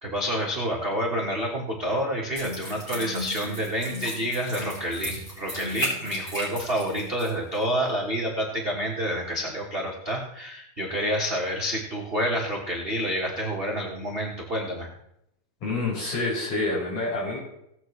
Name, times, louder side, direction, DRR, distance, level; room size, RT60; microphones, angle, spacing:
voice 1, 0.0-14.9, equal, 65° right, -2 dB, 0.5 m, -28 dB
sound 1, 2.4-7.3 7.5-7.6, equal, 25° left, 4.8 m, -35 dB
voice 2, 15.6-17.4, left 2 dB, 60° left, -6 dB, 6.6 m, -27 dB
18.0 x 8.3 x 3.2 m, 0.79 s
omnidirectional pair, 3.8 m